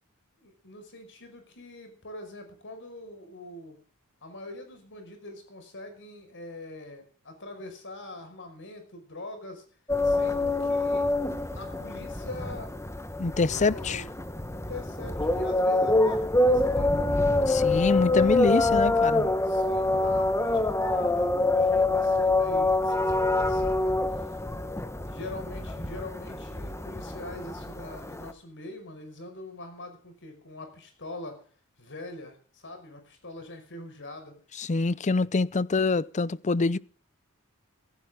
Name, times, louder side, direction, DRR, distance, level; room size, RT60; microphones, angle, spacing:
voice 1, 0.4-3.8 4.2-9.6 10.0-11.1 11.5-12.7 13.4-14.1 14.5-17.6 18.1-19.0 19.4-24.3 25.1-31.4 31.8-34.4, left 2 dB, 60° left, 5.4 m, -43 dB
sound 1, 9.9-28.3, left 2 dB, 15° left, 1.1 m, -26 dB
voice 2, 13.2-14.0 17.5-19.3 34.6-36.8, left 3 dB, 35° left, 0.6 m, -25 dB
16.0 x 15.5 x 3.7 m
head